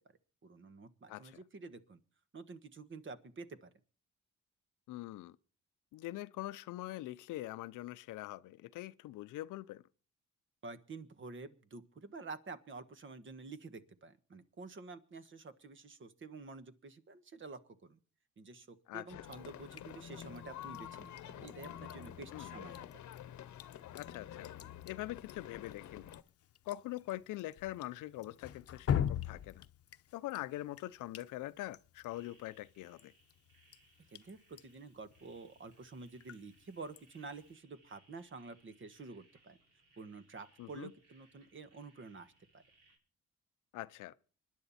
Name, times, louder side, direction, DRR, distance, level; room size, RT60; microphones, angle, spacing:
voice 1, 0.4-2.0 2.3-3.7 10.6-18.0 18.4-23.0 34.1-39.6 40.0-42.6, right 3 dB, 40° right, 1.5 m, -49 dB
voice 2, 1.1-1.4 4.9-5.4 5.9-9.8 18.9-19.2 22.3-22.5 23.9-24.5 24.8-26.1 26.7-29.7 30.1-33.1 40.6-40.9 43.7-44.1, left 16 dB, 85° left, 0.7 m, -43 dB
sound 1, 19.1-26.2, left 11 dB, 70° left, 1.0 m, -49 dB
Drip, 19.3-37.5, left 9 dB, 50° left, 0.9 m, -44 dB
sound 2, 32.1-43.0, right 2 dB, 80° right, 7.2 m, -69 dB
25.0 x 10.5 x 4.3 m
cardioid pair, 90°, 30 cm